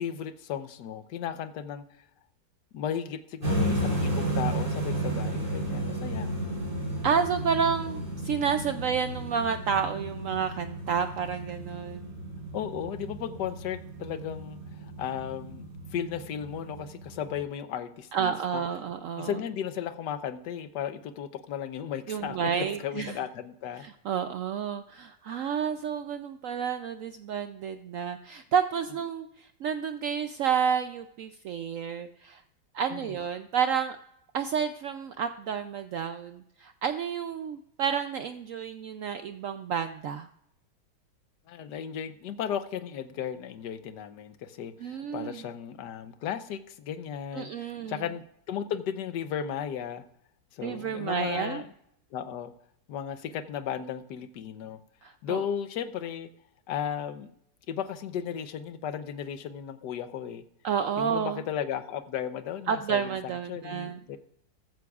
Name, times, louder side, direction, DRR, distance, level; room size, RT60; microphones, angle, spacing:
voice 1, 0.0-1.8 2.7-6.4 12.5-18.6 19.2-23.9 32.9-33.2 41.5-50.1 50.5-51.7 52.1-52.5 52.9-54.8 55.2-56.3 56.7-57.3 57.7-60.4 61.0-64.2, left 9 dB, 75° left, 11 dB, 1.3 m, -35 dB
sound 1, 3.4-17.4, right 1 dB, 50° right, 4.1 m, -33 dB
voice 2, 7.0-12.2 18.1-19.3 22.1-23.2 23.8-32.4 32.7-34.0 34.3-40.3 44.8-45.4 47.3-48.0 50.6-51.6 55.0-55.4 60.6-61.4 62.7-64.2, right 7 dB, 80° right, 9 dB, 0.7 m, -30 dB
14.5 x 14.0 x 2.4 m, 0.77 s
omnidirectional pair, 1.9 m